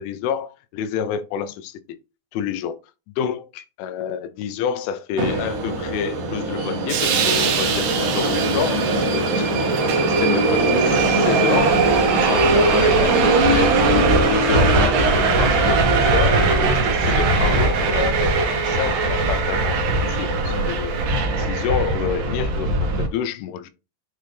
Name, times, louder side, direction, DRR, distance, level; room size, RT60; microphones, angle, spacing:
voice 1, 0.0-2.0 2.3-2.8 3.2-11.8 12.1-13.8 14.3-21.0 21.4-23.7, left 7 dB, 85° left, 3.1 m, -28 dB
Subway metro underground, 5.2-23.1, right 3 dB, 65° right, 2.1 m, -19 dB
8.3 x 3.8 x 3.3 m
omnidirectional pair, 5.5 m